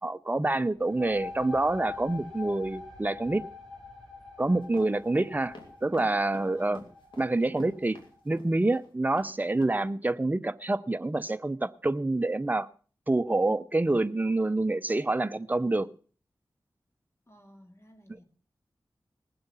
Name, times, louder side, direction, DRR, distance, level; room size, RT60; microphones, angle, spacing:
voice 1, 0.0-3.4 4.4-6.8 7.2-8.0 8.2-12.7 13.1-15.9, right 2 dB, 20° right, 12 dB, 0.7 m, -27 dB
sound 1, 0.7-8.2, left 5 dB, 5° left, 3.6 m, -45 dB
sound 2, 4.6-8.9 9.2-9.3 9.6-9.7, left 2 dB, 90° left, 2.8 m, -47 dB
voice 2, 6.4-6.9 17.3-18.2, equal, 35° left, 5 dB, 2.6 m, -55 dB
19.0 x 7.8 x 5.5 m, 0.41 s
wide cardioid pair, 75°, 8 cm